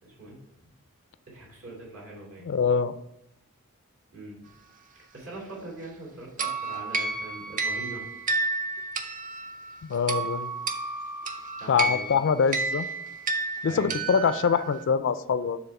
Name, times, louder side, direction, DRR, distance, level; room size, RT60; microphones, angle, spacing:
voice 1, 0.0-0.7 1.3-2.5 4.1-4.4 5.1-8.1 11.6-12.1 13.7-14.0, right 1 dB, 65° right, -4 dB, 2.3 m, -42 dB
voice 2, 2.4-2.9 9.8-10.6 11.7-12.9 13.6-15.6, left 6 dB, 55° left, 14 dB, 0.3 m, -24 dB
sound 1, 6.4-14.7, right 3 dB, 35° right, 0.5 m, -31 dB
6.9 x 3.5 x 5.3 m, 0.84 s
head